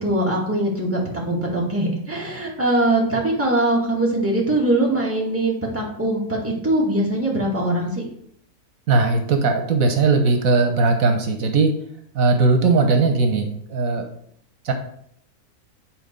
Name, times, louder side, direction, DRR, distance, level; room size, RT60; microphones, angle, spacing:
voice 1, 0.0-8.0, right 1 dB, 10° right, -4 dB, 2.1 m, -22 dB
voice 2, 8.9-11.7 12.1-14.0 14.6-14.7, right 3 dB, 75° right, 5 dB, 1.4 m, -18 dB
9.0 x 4.2 x 5.3 m, 0.67 s
omnidirectional pair, 1.5 m